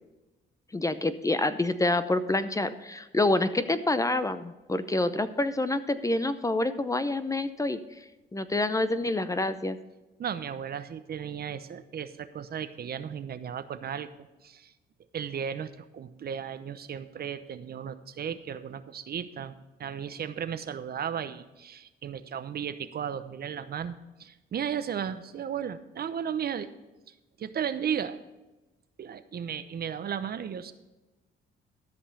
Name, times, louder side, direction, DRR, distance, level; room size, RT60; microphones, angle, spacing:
voice 1, 0.7-7.8 8.3-9.8, left 2 dB, 15° left, 12 dB, 0.6 m, -27 dB
voice 2, 10.2-14.7 15.1-19.5 19.8-23.9 24.2-26.7 27.4-28.2 29.0-30.7, right 8 dB, 50° right, 12 dB, 0.8 m, -35 dB
13.0 x 5.4 x 6.7 m, 1.1 s
cardioid pair, 90°, 20 cm